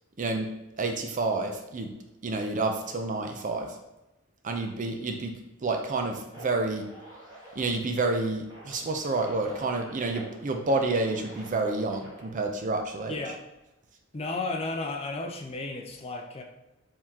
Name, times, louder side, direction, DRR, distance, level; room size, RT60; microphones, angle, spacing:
voice 1, 0.2-0.5 0.8-1.9 2.2-3.7 4.4-5.3 5.6-6.8 7.6-13.2, right 3 dB, 40° right, 4 dB, 0.5 m, -29 dB
sound 1, 5.8-12.3, right 1 dB, 20° right, 1.5 m, -48 dB
voice 2, 13.0-13.4 14.1-16.4, left 3 dB, 30° left, 2 dB, 0.5 m, -33 dB
4.6 x 3.7 x 2.8 m, 0.98 s
head